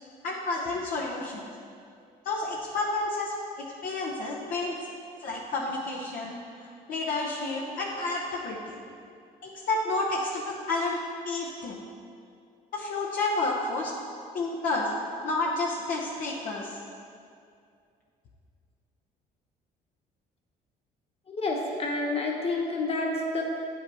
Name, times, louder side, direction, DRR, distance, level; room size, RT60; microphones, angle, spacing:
voice 1, 0.2-1.4 2.2-4.9 5.2-8.8 9.4-11.0 11.2-11.8 12.7-13.9 14.3-14.9 15.2-16.8, left 2 dB, 55° left, -3 dB, 0.8 m, -30 dB
voice 2, 21.3-23.4, left 2 dB, 35° left, -1 dB, 1.3 m, -29 dB
9.1 x 5.7 x 4.0 m, 2.4 s
cardioid pair, 110°, 17 cm